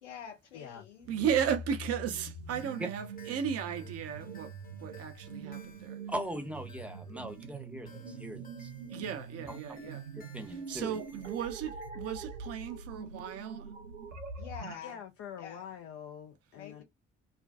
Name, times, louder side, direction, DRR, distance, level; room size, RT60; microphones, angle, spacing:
voice 1, 0.0-1.1 14.4-15.0 15.4-15.6 16.5-16.8, left 8 dB, 80° left, 0.7 m, -46 dB
voice 2, 0.5-0.8 14.8-16.8, left 8 dB, 45° left, 0.4 m, -45 dB
sound 1, 1.0-14.8, right 3 dB, 85° right, 0.5 m, -44 dB
voice 3, 1.1-4.5 4.8-6.0 8.9-10.0 10.7-13.7, right 8 dB, 45° right, 0.6 m, -35 dB
sound 2, 2.5-11.9, left 5 dB, 25° left, 0.9 m, -59 dB
voice 4, 6.1-8.7 9.5-9.6 10.1-11.0, right 1 dB, 5° right, 0.8 m, -40 dB
2.4 x 2.2 x 2.4 m
figure-of-eight pair, 45°, 35 cm